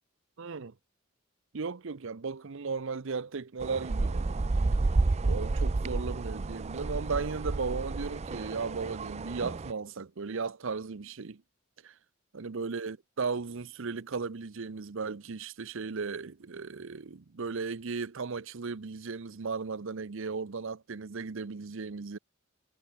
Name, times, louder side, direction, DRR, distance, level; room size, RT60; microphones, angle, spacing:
voice 1, 0.4-0.7 1.5-4.4 5.2-11.4 11.8-11.9 12.3-22.2, right 4 dB, 65° right, 0.7 m, -36 dB
sound 1, 3.6-9.7, right 3 dB, 30° right, 0.5 m, -30 dB
head